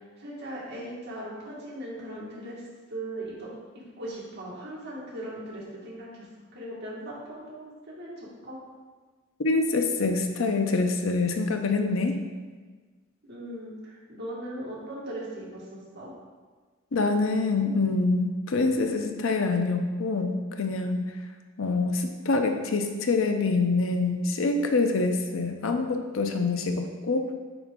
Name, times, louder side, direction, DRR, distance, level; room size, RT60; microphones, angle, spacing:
voice 1, 0.0-2.6 2.9-3.5 4.0-6.3 6.5-8.6 13.2-16.1, right 1 dB, 55° right, -6 dB, 2.0 m, -39 dB
voice 2, 9.4-12.2 16.9-21.1 21.6-27.3, left 3 dB, 85° left, 6 dB, 0.6 m, -25 dB
8.7 x 3.6 x 3.7 m, 1.4 s
head